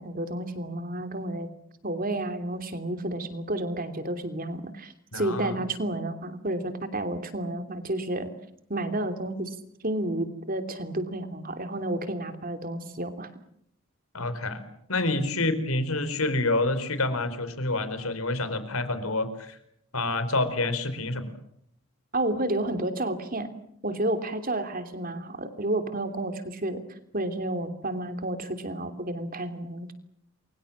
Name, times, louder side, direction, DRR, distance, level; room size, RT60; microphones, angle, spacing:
voice 1, 0.0-1.5 1.8-8.3 8.7-9.5 9.8-13.3 22.1-23.5 23.8-26.8 27.1-29.9, right 1 dB, 40° right, 8 dB, 3.0 m, -31 dB
voice 2, 5.1-5.6 14.1-14.6 14.9-19.6 19.9-21.3, left 2 dB, 85° left, 11 dB, 4.5 m, -28 dB
29.0 x 23.5 x 7.4 m, 0.70 s
head